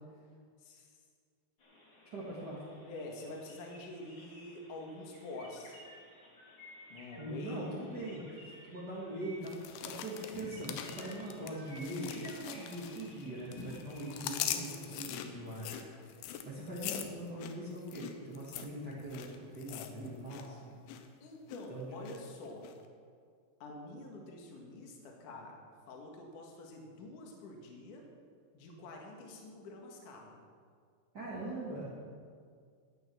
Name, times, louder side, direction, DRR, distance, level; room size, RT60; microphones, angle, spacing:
voice 1, 0.6-1.0 2.8-5.8 6.9-8.0 21.2-22.7 23.6-28.1 28.5-30.4, left 2 dB, 55° left, 0 dB, 2.7 m, -47 dB
sound 1, 1.6-15.7, left 1 dB, 35° left, 2.5 m, -54 dB
voice 2, 2.1-2.6 7.2-20.8 21.7-22.1 31.1-31.9, right 1 dB, 65° right, -6 dB, 1.0 m, -42 dB
sound 2, 9.4-13.2 13.5-20.5 20.7-21.1 21.5-22.2 22.6-22.7, left 10 dB, 85° left, 3.2 m, -42 dB
14.5 x 9.3 x 6.2 m, 2.1 s
omnidirectional pair, 5.4 m